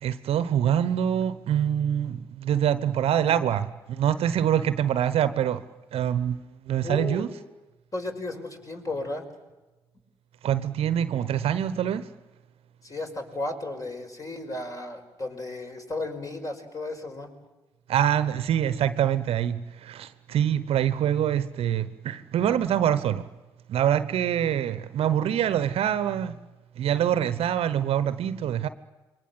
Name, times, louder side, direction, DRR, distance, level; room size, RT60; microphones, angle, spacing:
voice 1, 0.0-5.6 5.9-7.3 10.4-12.1 17.9-23.3 23.7-26.3 26.8-28.7, right 10 dB, 60° right, 1.1 m, -25 dB
voice 2, 6.8-7.2 7.9-9.2 12.8-17.3, left 2 dB, 30° left, 5.7 m, -34 dB
27.5 x 23.0 x 7.8 m
hypercardioid pair, 45°, 11 cm